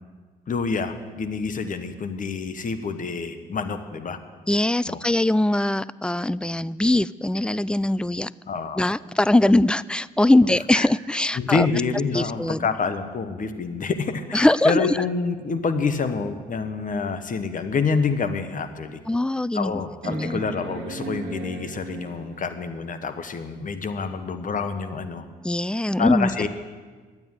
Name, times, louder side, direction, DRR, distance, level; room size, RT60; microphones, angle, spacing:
voice 1, 0.5-4.2 4.8-5.0 8.5-8.9 10.7-10.9 11.4-19.0 19.5-25.3 26.0-26.5, left 5 dB, 45° left, 9 dB, 1.4 m, -27 dB
voice 2, 4.5-8.3 8.8-11.7 12.1-12.7 14.3-15.0 19.1-19.8 20.1-20.4 25.4-26.5, left 1 dB, 5° left, 19 dB, 0.4 m, -21 dB
sound 1, 18.6-18.7 20.0-22.5 24.2-24.3, right 4 dB, 75° right, 1.4 m, -36 dB
11.0 x 9.1 x 9.7 m, 1.4 s
hypercardioid pair, 55°, 19 cm